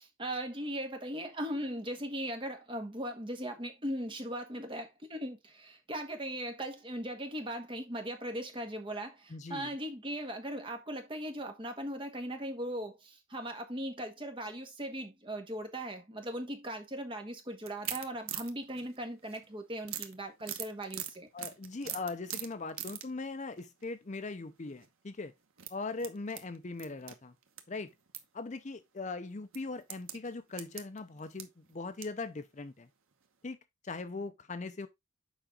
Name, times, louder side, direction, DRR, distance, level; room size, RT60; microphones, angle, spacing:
voice 1, 0.0-21.3, right 1 dB, 25° right, 1.5 m, -39 dB
voice 2, 9.3-9.7 21.3-25.3 25.7-27.3 27.7-27.9 28.3-32.9 33.4-33.6 33.8-34.9, left 3 dB, 35° left, 0.6 m, -40 dB
sound 1, 17.6-19.5 19.8-23.1 23.6-23.9 24.7-24.9 25.5-27.6 27.9-28.2 28.7-28.8 29.5-32.2 32.7-32.8 33.1-33.2, right 10 dB, 85° right, 1.1 m, -42 dB
7.2 x 5.0 x 3.8 m
head